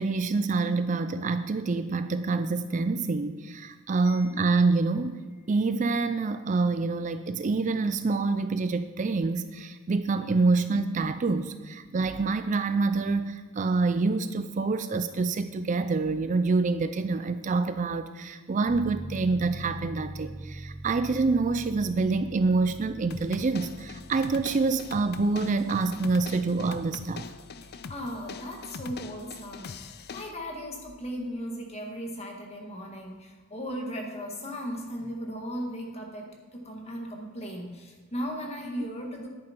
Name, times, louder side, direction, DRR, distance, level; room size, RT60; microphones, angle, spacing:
voice 1, 0.0-5.2 5.5-27.3, right 3 dB, 35° right, 10 dB, 0.4 m, -26 dB
voice 2, 4.0-4.4 27.6-39.3, equal, 30° left, 1 dB, 1.8 m, -37 dB
Piano, 18.6-30.9, right 1 dB, 15° right, 2.3 m, -45 dB
sound 1, 23.1-30.3, left 5 dB, 50° left, 0.5 m, -42 dB
10.5 x 9.0 x 4.5 m, 1.5 s
head